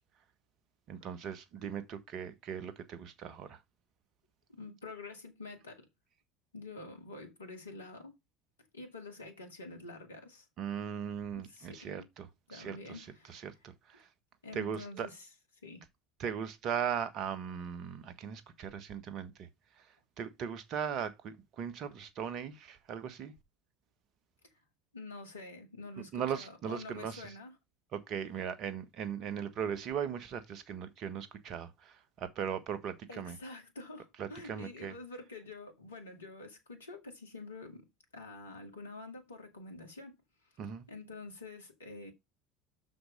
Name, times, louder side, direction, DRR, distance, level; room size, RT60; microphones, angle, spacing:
voice 1, 0.9-3.6 10.6-14.1 14.5-15.1 16.2-19.5 19.8-19.9 20.2-23.3 26.1-27.3 27.9-33.4 34.2-34.9 40.6-40.9, right 8 dB, 50° right, 1.4 m, -38 dB
voice 2, 4.5-5.9 6.5-8.1 8.7-10.5 11.3-12.1 12.5-13.5 14.4-15.3 15.6-15.8 24.9-27.5 33.1-37.8 38.1-40.2 40.9-42.1, left 3 dB, 80° left, 1.8 m, -47 dB
6.4 x 6.0 x 5.2 m
figure-of-eight pair, 70°, 0 cm